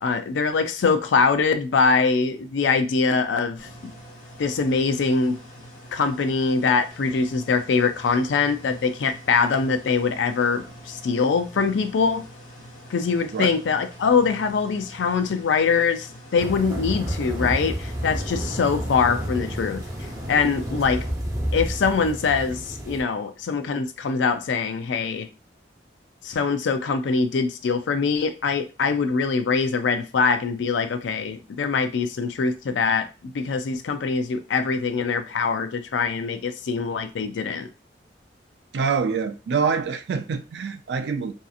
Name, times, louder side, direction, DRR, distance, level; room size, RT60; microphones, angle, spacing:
voice 1, 0.0-3.9 4.4-5.4 5.9-12.2 12.9-19.8 20.3-21.1 21.5-25.3 26.2-37.7, left 5 dB, 90° left, 0.4 m, -23 dB
sound 1, 3.6-21.1, equal, 45° left, 0.8 m, -45 dB
sound 2, 16.3-23.0, equal, 15° right, 0.6 m, -30 dB
voice 2, 38.7-41.3, right 5 dB, 65° right, 0.3 m, -25 dB
2.7 x 2.5 x 2.4 m
head